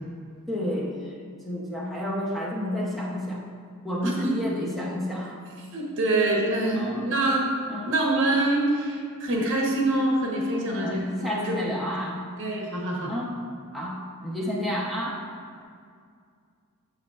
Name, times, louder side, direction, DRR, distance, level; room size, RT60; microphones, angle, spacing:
voice 1, 0.5-1.1 1.4-3.4 3.8-5.4 6.7-7.0 7.7-7.9 10.7-12.2 13.1-13.3 13.7-15.2, equal, ahead, -5 dB, 0.7 m, -30 dB
voice 2, 4.0-4.4 5.7-7.5 7.9-11.6 12.4-13.1 14.5-14.6, right 2 dB, 60° right, -1 dB, 1.0 m, -25 dB
6.6 x 6.4 x 2.4 m, 2.2 s
head